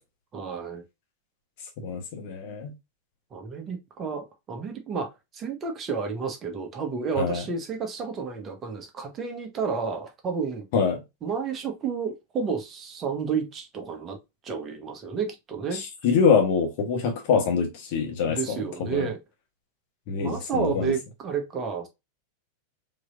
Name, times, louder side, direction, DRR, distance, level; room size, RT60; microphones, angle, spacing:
voice 1, 0.3-0.8 3.3-10.6 11.2-14.2 14.4-15.8 18.2-19.2 20.2-21.9, right 5 dB, 25° right, 1.2 m, -31 dB
voice 2, 1.8-2.7 7.2-7.4 10.7-11.0 15.7-19.1 20.1-20.9, left 6 dB, 50° left, 1.3 m, -25 dB
4.6 x 3.1 x 2.5 m
figure-of-eight pair, 90°, 0 cm